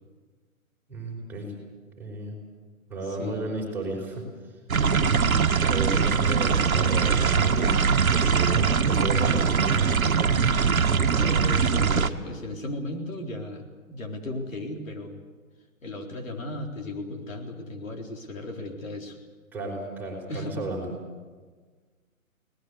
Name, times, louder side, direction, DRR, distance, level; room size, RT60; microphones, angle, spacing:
voice 1, 0.9-1.5 2.0-2.3 2.9-4.2 5.5-7.8 8.1-10.2 19.5-20.9, right 2 dB, 5° right, -3 dB, 4.8 m, -33 dB
voice 2, 3.1-3.4 4.7-5.8 10.6-15.2 15.8-19.2 20.3-20.6, left 1 dB, 70° left, 2 dB, 4.1 m, -36 dB
sound 1, 4.7-12.1, right 6 dB, 85° right, 1.5 m, -22 dB
23.0 x 19.0 x 8.2 m, 1.4 s
hypercardioid pair, 145°, 41 cm